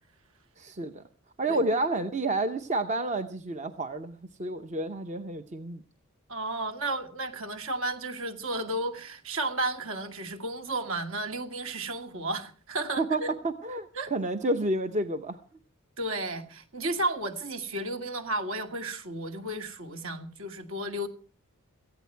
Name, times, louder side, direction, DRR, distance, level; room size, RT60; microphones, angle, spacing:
voice 1, 0.6-1.0 1.4-5.8 13.0-15.4, right 2 dB, 30° right, 9 dB, 0.7 m, -30 dB
voice 2, 6.3-13.3 14.0-14.1 16.0-21.1, right 2 dB, 60° right, 7 dB, 2.2 m, -33 dB
18.0 x 14.5 x 4.5 m, 0.38 s
head